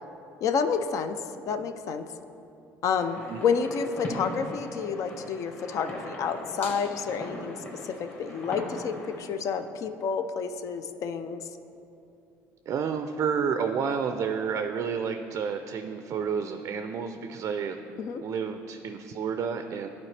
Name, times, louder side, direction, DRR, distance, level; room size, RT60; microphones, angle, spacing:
voice 1, 0.4-1.2 1.5-2.0 2.8-7.6 7.8-11.5 18.0-18.2, left 6 dB, 55° left, 8 dB, 0.4 m, -29 dB
sound 1, 2.9-9.2, left 1 dB, 30° left, 1.6 m, -39 dB
voice 2, 12.7-17.8 18.2-19.9, right 6 dB, 50° right, 7 dB, 0.4 m, -30 dB
11.0 x 4.2 x 3.2 m, 2.8 s
supercardioid pair, 90°, 7 cm